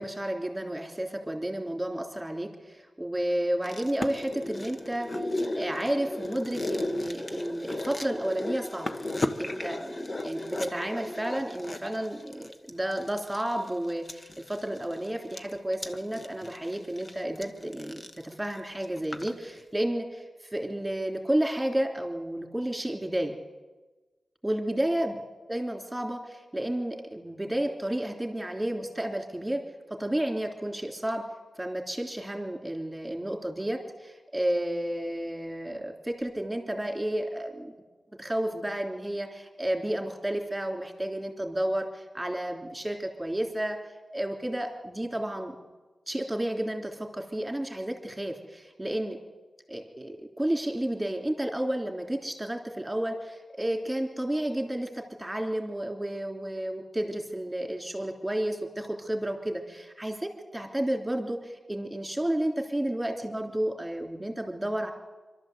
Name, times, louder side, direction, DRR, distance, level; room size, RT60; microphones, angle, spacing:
voice 1, 0.0-5.1 5.6-20.2 20.5-23.4 24.4-25.2 25.5-29.6 29.9-31.2 31.6-37.7 38.2-43.8 44.1-45.5 46.1-49.2 49.7-64.9, right 1 dB, 10° right, 3 dB, 3.2 m, -31 dB
sound 1, 3.6-19.3 19.6-19.7, left 1 dB, 30° left, 1.2 m, -35 dB
26.5 x 12.5 x 8.0 m, 1.2 s
wide cardioid pair, 115°, 0 cm